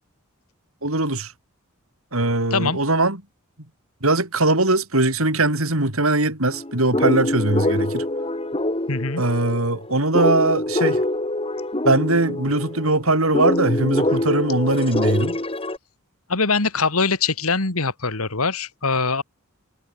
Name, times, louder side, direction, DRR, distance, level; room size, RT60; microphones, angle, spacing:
voice 1, 0.8-1.3 2.1-3.2 4.0-8.0 9.2-11.0 11.9-15.4, right 2 dB, 75° right, 5.2 m, -21 dB
sound 1, 6.5-15.8, left 1 dB, 25° left, 2.7 m, -24 dB
voice 2, 8.9-9.2 16.3-19.2, left 4 dB, 90° left, 2.5 m, -22 dB
head